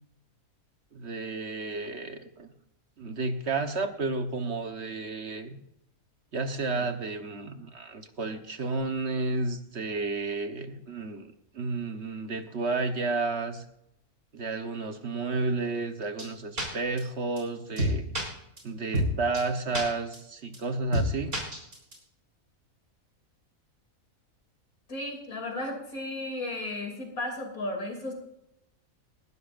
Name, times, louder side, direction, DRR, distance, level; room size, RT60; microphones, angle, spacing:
voice 1, 0.9-2.5 3.0-5.6 6.3-11.3 11.5-13.6 14.3-18.1 18.6-21.3, right 3 dB, 55° right, 6 dB, 1.4 m, -32 dB
sound 1, 16.2-16.3 16.6-16.7 17.0-17.1 17.4-17.5 17.8-18.2 18.6-18.7 18.9-19.1 19.3-19.4 19.7-19.8 20.1-20.2 20.5-20.6 20.9-21.1 21.3-21.9, right 1 dB, 85° right, 4.4 m, -27 dB
voice 2, 24.9-28.1, left 1 dB, 85° left, 3 dB, 3.4 m, -34 dB
19.5 x 12.5 x 2.6 m, 0.77 s
omnidirectional pair, 1.5 m